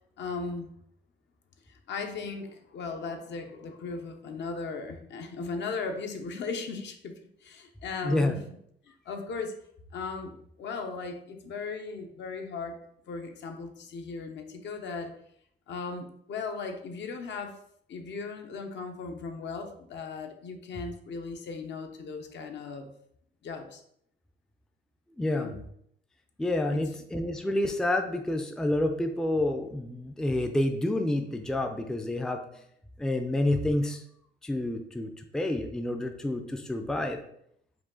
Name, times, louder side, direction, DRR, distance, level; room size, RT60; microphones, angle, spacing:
voice 1, 0.2-0.7 1.7-7.1 7.4-8.4 8.9-9.6 9.9-12.8 13.1-15.1 15.7-17.6 17.9-22.9 23.4-23.8 25.2-25.6 26.7-26.8, left 4 dB, 65° left, 5 dB, 0.7 m, -37 dB
voice 2, 8.0-8.4 25.2-25.5 26.4-32.4 33.0-34.0 34.4-37.2, left 1 dB, 5° left, 5 dB, 0.4 m, -28 dB
4.9 x 2.3 x 3.7 m, 0.70 s
cardioid pair, 90°, 20 cm